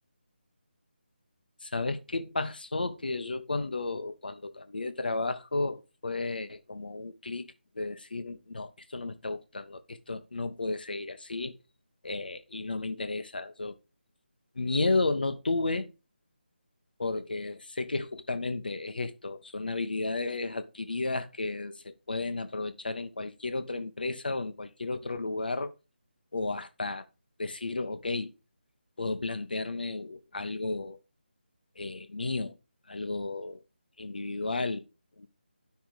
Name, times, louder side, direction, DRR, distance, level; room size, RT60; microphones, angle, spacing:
voice 1, 1.6-7.5 7.7-11.6 12.0-13.8 14.5-15.9 17.0-25.7 26.3-27.0 27.4-28.3 29.0-31.0 31.8-32.6 32.9-33.6 34.0-34.9 35.2-35.3, left 3 dB, 55° left, 1.1 m, -33 dB
10.5 x 5.8 x 4.9 m
figure-of-eight pair, 155°, 6 cm